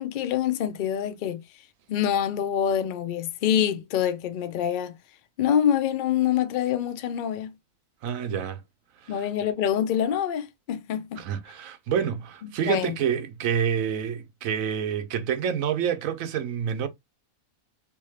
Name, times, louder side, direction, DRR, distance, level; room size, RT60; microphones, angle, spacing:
voice 1, 0.0-1.4 1.9-4.9 5.4-7.5 9.1-11.2 12.4-12.9, left 9 dB, 60° left, 0.5 m, -26 dB
voice 2, 8.0-8.6 9.0-9.2 11.2-16.9, right 8 dB, 80° right, 1.1 m, -28 dB
3.5 x 2.5 x 3.1 m
omnidirectional pair, 1.4 m